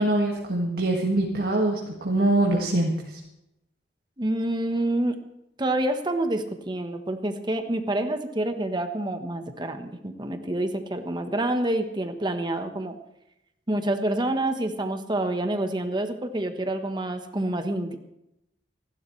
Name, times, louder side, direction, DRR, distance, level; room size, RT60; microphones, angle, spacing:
voice 1, 0.0-3.2, right 1 dB, 55° right, -1 dB, 2.0 m, -24 dB
voice 2, 4.2-5.2 5.6-13.0 13.7-18.0, right 1 dB, 25° right, 7 dB, 1.3 m, -27 dB
28.0 x 12.0 x 3.3 m, 0.87 s
head